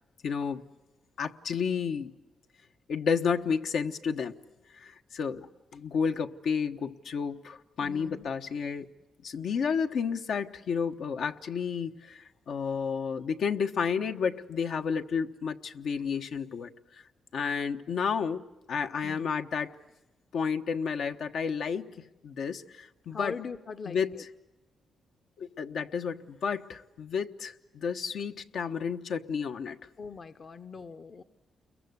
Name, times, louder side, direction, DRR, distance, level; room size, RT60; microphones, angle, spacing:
voice 1, 0.2-0.6 1.2-2.1 2.9-4.3 4.8-5.5 5.7-8.9 9.2-16.7 17.3-19.7 20.3-21.9 22.2-23.3 23.8-24.3 25.4-29.8, left 6 dB, 70° left, 6 dB, 1.2 m, -31 dB
voice 2, 7.8-8.3 19.0-19.3 23.1-24.2 30.0-31.2, left 5 dB, 40° left, 10 dB, 0.9 m, -41 dB
29.5 x 22.5 x 8.2 m, 1.0 s
cardioid pair, 120°, 0 cm